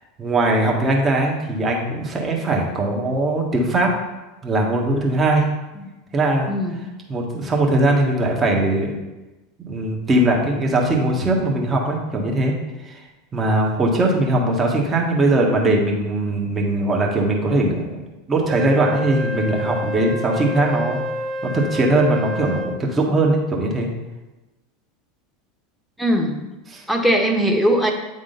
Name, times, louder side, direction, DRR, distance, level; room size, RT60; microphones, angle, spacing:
voice 1, 0.2-3.9 4.4-5.4 6.1-6.5 7.1-9.0 9.6-12.5 12.8-13.0 13.3-21.0 21.4-23.9 26.7-26.8, right 2 dB, 25° right, -1 dB, 1.5 m, -20 dB
Wind instrument woodwind instrument, 18.5-22.8, equal, 40° right, 2.0 m, -28 dB
voice 2, 26.0-26.4 26.9-27.9, equal, ahead, 2 dB, 1.2 m, -19 dB
9.0 x 3.7 x 4.0 m, 1.1 s
hypercardioid pair, 85°, 0 cm